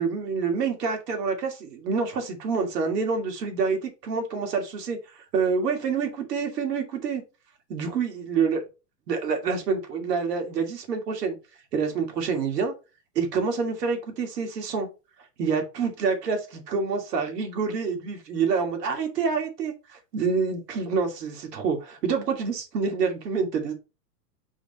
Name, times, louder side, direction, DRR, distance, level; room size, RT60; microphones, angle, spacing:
voice 1, 0.0-7.2 7.7-8.6 9.1-11.4 11.7-12.7 13.1-14.9 15.4-23.7, right 5 dB, 80° right, 2.5 m, -27 dB
5.1 x 3.6 x 5.3 m
supercardioid pair, 155°, 48 cm